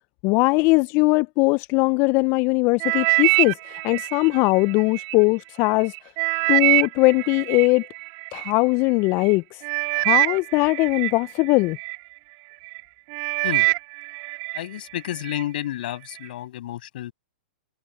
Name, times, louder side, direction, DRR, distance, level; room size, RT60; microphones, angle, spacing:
voice 1, 0.2-5.9 6.5-7.9 8.3-9.6 9.9-11.8, left 27 dB, 40° left, 0.7 m, -20 dB
sound 1, 2.8-5.1 5.7-8.5 9.2-9.3 9.6-12.0 12.5-12.8 13.1-14.6 15.0-15.4 16.0-16.1, right 39 dB, 45° right, 5.2 m, -24 dB
voice 2, 14.5-17.1, left 13 dB, 60° left, 7.8 m, -31 dB
hypercardioid pair, 110°, 6 cm